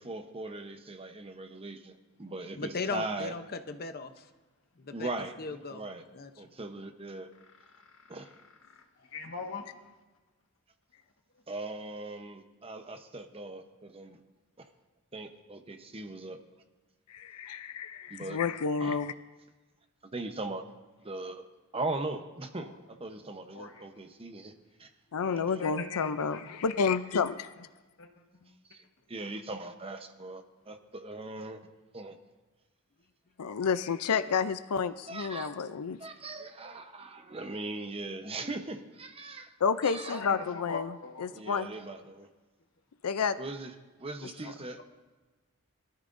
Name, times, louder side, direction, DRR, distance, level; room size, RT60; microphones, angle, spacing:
voice 1, 0.0-3.3 4.9-5.3 5.7-6.0 6.4-7.3 8.1-8.3 11.5-14.2 14.6-14.7 15.1-16.4 18.1-18.4 18.8-19.0 20.1-20.6 21.0-21.4 21.7-22.7 23.0-24.5 24.8-24.9 28.7-28.8 29.1-31.6 31.9-32.2 35.1-35.6 36.0-39.5 39.8-40.2 41.3-42.3 43.4-43.7 44.0-44.8, right 2 dB, 25° right, 6 dB, 0.9 m, -39 dB
voice 2, 2.5-4.1 4.8-5.1 5.4-5.8 6.1-6.3, left 4 dB, 45° left, 9 dB, 0.8 m, -37 dB
voice 3, 9.1-9.6 23.5-23.7 25.2-26.8 28.0-28.1 28.3-28.5 40.1-41.3, left 4 dB, 60° left, 3 dB, 1.5 m, -40 dB
voice 4, 17.1-19.1 25.1-27.5 33.4-36.0 39.6-41.7 43.0-43.4, left 6 dB, 90° left, 12 dB, 0.5 m, -30 dB
22.5 x 13.5 x 2.6 m, 1.2 s
head